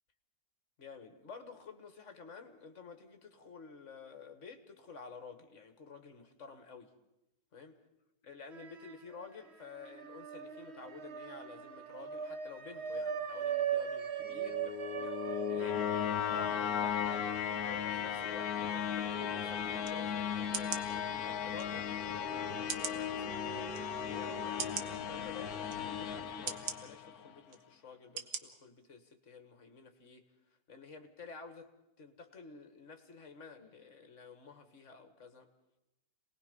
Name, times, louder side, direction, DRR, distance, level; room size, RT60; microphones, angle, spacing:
voice 1, 0.8-6.9 7.5-7.7 8.2-17.4 17.7-22.7 23.0-30.2 30.7-35.5, left 4 dB, 45° left, 7 dB, 1.9 m, -51 dB
sound 1, 8.5-9.3 9.6-20.0 20.4-20.5 21.6-25.0, right 8 dB, 45° right, 1.2 m, -41 dB
sound 2, 14.3-27.3, left 9 dB, 60° left, 1.3 m, -36 dB
sound 3, 19.8-20.0 20.5-20.9 21.6-21.7 22.7-23.0 23.7-23.8 24.6-24.9 25.7-25.8 26.5-26.8 27.5-27.6 28.2-28.4 28.8-28.9, right 6 dB, 60° right, 1.6 m, -38 dB
27.5 x 19.5 x 5.4 m, 0.91 s
omnidirectional pair, 1.9 m